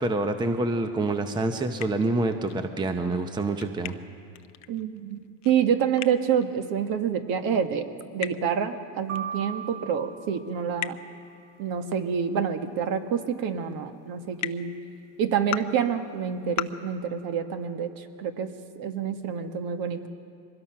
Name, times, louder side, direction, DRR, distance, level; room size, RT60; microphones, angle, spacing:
voice 1, 0.0-4.0, right 2 dB, 10° right, 7 dB, 0.8 m, -27 dB
sound 1, 0.8-2.7 2.9-6.9 7.2-8.9 9.1-9.2 9.6-9.7 10.8-10.9 13.1-13.2 14.4-14.5 15.3-15.6 16.5-16.7, left 16 dB, 40° left, 0.7 m, -36 dB
voice 2, 4.7-7.9 8.1-11.0 11.6-14.7 15.2-20.1, right 7 dB, 50° right, 7 dB, 1.6 m, -27 dB
sound 2, 9.1-11.2, right 7 dB, 35° right, 1.0 m, -38 dB
24.0 x 20.5 x 5.9 m, 2.4 s
supercardioid pair, 130°, 44 cm